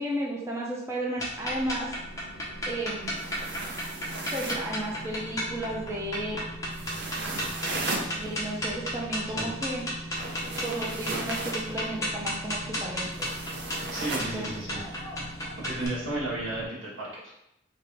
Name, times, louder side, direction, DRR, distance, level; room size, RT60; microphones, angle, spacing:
voice 1, 0.0-2.0 2.7-3.2 4.3-6.4 8.2-9.9 10.6-13.3 14.1-14.6, right 1 dB, 15° right, -3 dB, 0.5 m, -33 dB
sound 1, 1.2-16.7, equal, 60° left, 0.7 m, -42 dB
sound 2, 1.2-15.9, equal, 15° left, 0.7 m, -34 dB
sound 3, 3.1-4.7 6.7-8.1 10.1-11.6 13.1-14.3, right 2 dB, 55° right, 0.6 m, -35 dB
voice 2, 13.9-14.8 15.2-17.3, right 1 dB, 85° right, -6 dB, 1.4 m, -34 dB
3.1 x 2.8 x 3.4 m, 0.81 s
head